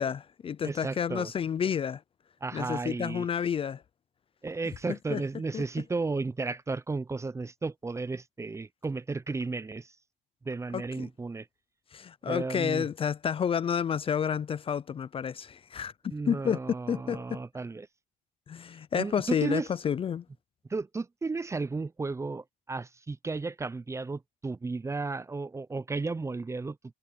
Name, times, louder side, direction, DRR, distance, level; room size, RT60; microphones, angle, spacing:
voice 1, 0.0-2.0 2.5-3.8 4.9-5.2 5.5-5.6 10.7-11.1 11.9-15.9 16.3-16.6 16.9-17.4 18.5-20.3, left 8 dB, 35° left, 0.5 m, -30 dB
voice 2, 0.6-1.3 2.4-3.3 4.4-9.9 10.4-11.5 12.2-12.8 16.1-17.9 18.9-19.7 20.7-26.8, right 3 dB, 15° right, 0.6 m, -33 dB
cardioid pair, 110°, 17 cm